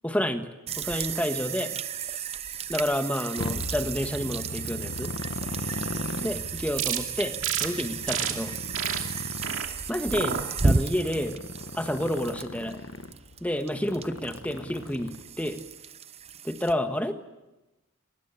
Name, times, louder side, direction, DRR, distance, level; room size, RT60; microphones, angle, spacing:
voice 1, 0.0-1.7 2.7-5.1 6.2-8.5 9.9-11.4 11.7-12.8 13.4-15.6 16.4-17.1, equal, 5° left, 7 dB, 1.4 m, -29 dB
sound 1, 0.7-16.7, right 4 dB, 30° right, 0.8 m, -33 dB
Motorcycle, 3.4-15.5, left 2 dB, 60° left, 1.2 m, -38 dB
sound 2, 6.8-7.0 7.4-7.7 8.1-8.3 8.7-9.0 9.4-9.7 10.1-10.4 10.9-11.3, right 8 dB, 60° right, 2.6 m, -29 dB
23.5 x 22.0 x 8.9 m, 1.0 s
head